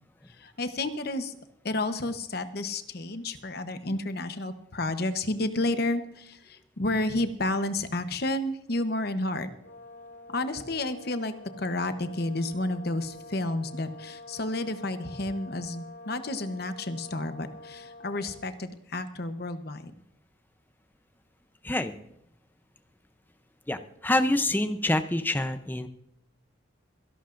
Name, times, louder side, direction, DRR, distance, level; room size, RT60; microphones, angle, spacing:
voice 1, 0.4-1.4 1.6-9.5 10.3-19.9, left 2 dB, 55° left, 9 dB, 0.9 m, -31 dB
Brass instrument, 9.6-18.5, left 2 dB, 70° left, 5.3 m, -47 dB
voice 2, 23.7-25.9, left 1 dB, 10° left, 9 dB, 0.6 m, -26 dB
26.5 x 11.5 x 2.6 m, 0.79 s
head